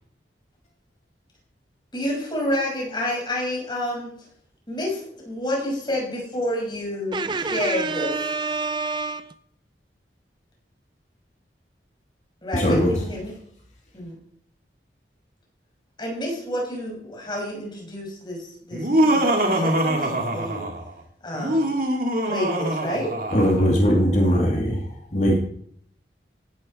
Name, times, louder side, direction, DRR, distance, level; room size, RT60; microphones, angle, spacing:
voice 1, 1.9-4.1 4.7-8.2 12.4-13.3 13.9-14.2 16.0-20.7 21.2-21.8 22.2-23.1, left 1 dB, 25° left, -1 dB, 6.0 m, -29 dB
voice 2, 7.1-9.3, right 4 dB, 25° right, 11 dB, 0.4 m, -27 dB
voice 3, 12.5-13.0 23.3-25.4, equal, 40° left, -1 dB, 2.5 m, -20 dB
Laughter, 18.7-20.9 21.3-23.7, right 1 dB, 55° right, 2.5 m, -23 dB
16.5 x 12.0 x 4.4 m, 0.65 s
head